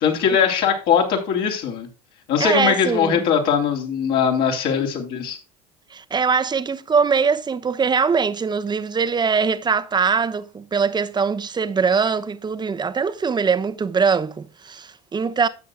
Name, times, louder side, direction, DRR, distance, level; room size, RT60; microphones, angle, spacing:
voice 1, 0.0-1.9 2.3-5.4, left 7 dB, 55° left, 3.2 m, -20 dB
voice 2, 2.4-3.2 5.9-15.5, right 5 dB, 25° right, 1.0 m, -22 dB
13.0 x 8.4 x 2.2 m
hypercardioid pair, 70°, 19 cm